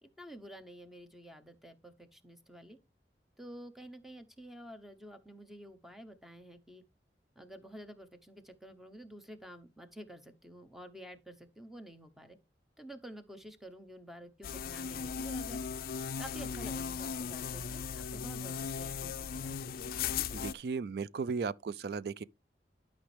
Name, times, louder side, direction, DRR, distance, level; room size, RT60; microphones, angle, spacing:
voice 1, 0.0-2.8 3.4-6.8 7.4-12.4 12.8-15.6 16.2-19.8, right 1 dB, ahead, 0.8 m, -50 dB
sound 1, 14.4-20.5, left 6 dB, 55° left, 0.4 m, -37 dB
voice 2, 20.3-22.2, right 5 dB, 60° right, 0.4 m, -36 dB
12.0 x 5.3 x 3.3 m
head